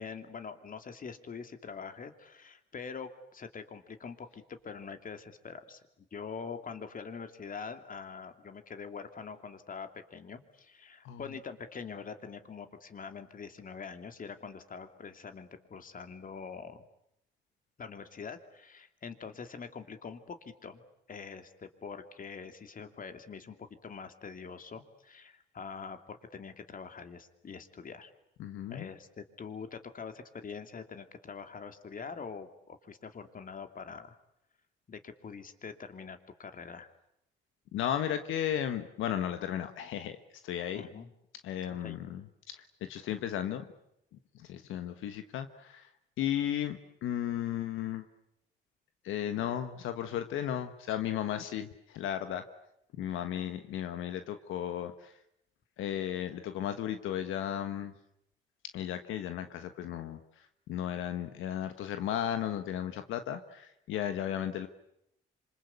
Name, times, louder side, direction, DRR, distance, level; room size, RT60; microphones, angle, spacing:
voice 1, 0.0-16.8 17.8-20.8 21.1-28.1 28.7-34.2 34.9-36.9 40.7-41.1 41.8-42.0, left 5 dB, 45° left, 8 dB, 2.8 m, -44 dB
voice 2, 28.4-28.9 37.7-40.2 40.4-40.9 41.4-42.2 42.5-43.7 44.3-45.9 46.2-48.0 49.0-52.4 53.0-55.1 55.8-57.9 58.7-60.2 60.7-64.7, left 10 dB, 85° left, 9 dB, 1.5 m, -35 dB
26.5 x 26.0 x 8.4 m, 0.78 s
cardioid pair, 90°, 20 cm